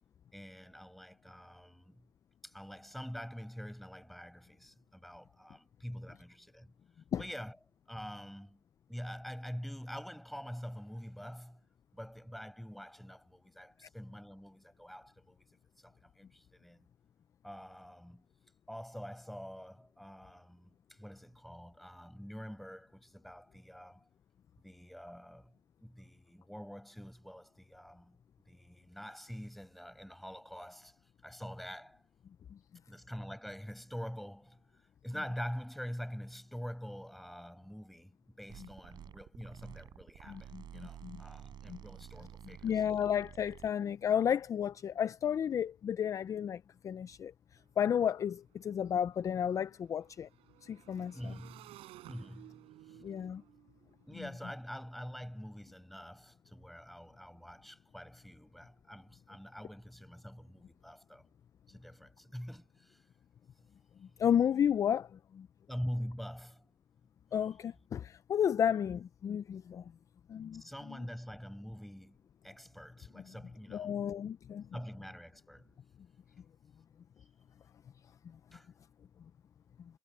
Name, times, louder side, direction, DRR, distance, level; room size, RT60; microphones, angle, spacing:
voice 1, 0.3-2.1 2.4-6.7 7.2-7.6 7.9-8.6 8.9-11.6 11.9-15.5 15.8-16.9 17.4-18.2 18.7-24.1 24.6-25.5 25.8-28.2 28.4-32.0 32.9-34.6 35.0-42.8 51.1-51.8 52.1-53.0 54.1-61.3 61.7-63.0 65.7-66.6 67.5-67.6 70.5-72.2 72.4-74.0 74.7-75.7 78.1-78.7, equal, ahead, 6.3 m, -45 dB
sound 1, 38.5-43.7, right 10 dB, 45° right, 5.3 m, -51 dB
voice 2, 40.3-41.2 41.7-41.8 42.6-47.3 47.8-50.3 50.6-51.3 53.0-53.4 64.2-65.5 67.3-69.8 70.3-70.6 73.7-74.7, left 9 dB, 30° left, 0.4 m, -32 dB
Motorcycle / Engine, 47.6-47.7 47.9-55.1, right 15 dB, 65° right, 7.0 m, -57 dB
cardioid pair, 130°, 11 cm